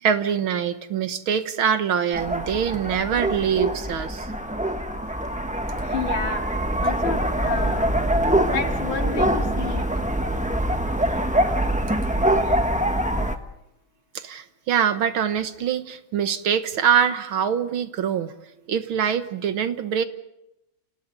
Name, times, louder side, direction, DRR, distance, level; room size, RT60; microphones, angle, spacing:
voice 1, 0.0-4.3 14.1-18.3 18.7-20.0, right 8 dB, 70° right, 10 dB, 2.0 m, -24 dB
sound 1, 2.1-13.4, right 1 dB, 5° right, 0.9 m, -24 dB
voice 2, 5.8-6.4 6.8-7.9 8.4-9.8, left 5 dB, 65° left, 3 dB, 3.2 m, -30 dB
30.0 x 29.0 x 4.1 m, 0.85 s
omnidirectional pair, 2.4 m